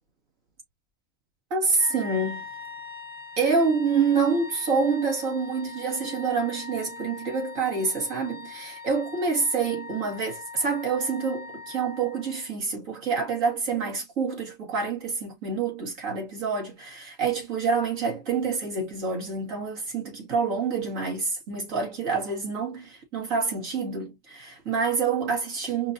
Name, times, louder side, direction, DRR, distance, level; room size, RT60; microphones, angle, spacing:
voice 1, 1.5-2.5 3.4-25.9, right 5 dB, 85° right, 2.2 m, -27 dB
Wind instrument woodwind instrument, 1.7-12.5, left 4 dB, 10° left, 0.7 m, -42 dB
5.0 x 2.5 x 2.5 m
omnidirectional pair, 1.3 m